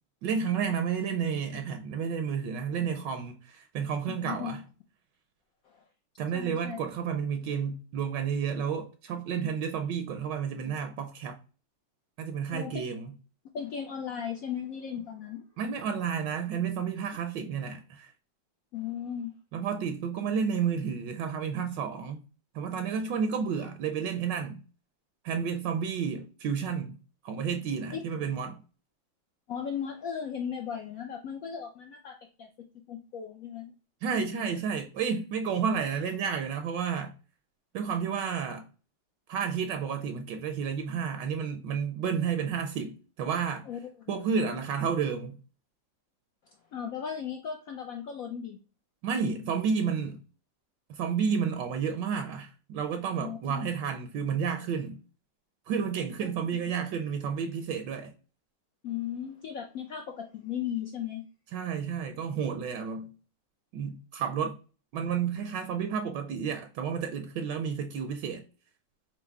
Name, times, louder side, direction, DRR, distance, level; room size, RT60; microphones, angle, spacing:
voice 1, 0.2-4.6 6.2-11.4 12.2-13.1 15.6-18.1 19.5-22.2 22.5-24.6 25.2-27.0 27.2-28.6 34.0-37.1 37.7-38.7 39.3-43.7 44.1-45.4 49.0-50.2 50.9-55.0 55.7-58.1 61.5-63.1 63.7-64.6 64.9-68.4, right 6 dB, 75° right, 1.1 m, -31 dB
voice 2, 4.1-4.6 6.3-6.8 12.5-12.7 13.5-15.4 18.7-19.3 27.9-28.0 29.5-32.5 32.9-33.7 34.1-34.4 43.7-43.8 46.7-48.6 53.2-53.6 58.8-61.2, left 8 dB, 75° left, 0.7 m, -36 dB
4.6 x 2.0 x 4.5 m
omnidirectional pair, 2.1 m